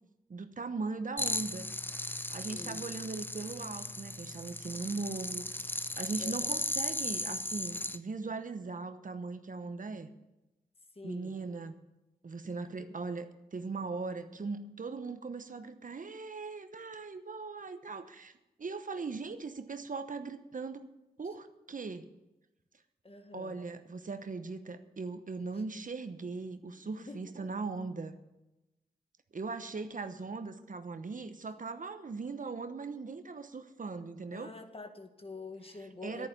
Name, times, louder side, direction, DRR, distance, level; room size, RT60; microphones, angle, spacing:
voice 1, 0.3-1.7 2.3-5.7 6.0-10.1 11.0-11.7 12.2-18.3 18.6-20.8 21.2-22.1 23.3-28.2 29.3-34.5 36.0-36.3, right 4 dB, 50° right, 10 dB, 1.0 m, -39 dB
sound 1, 1.2-8.0, left 1 dB, 10° left, 0.7 m, -36 dB
voice 2, 2.5-2.9 6.2-6.5 10.9-11.4 12.8-13.0 23.0-23.6 25.5-25.6 27.0-27.3 34.3-36.3, left 3 dB, 35° left, 7 dB, 1.7 m, -47 dB
10.5 x 9.7 x 8.4 m, 0.97 s
cardioid pair, 45°, 17 cm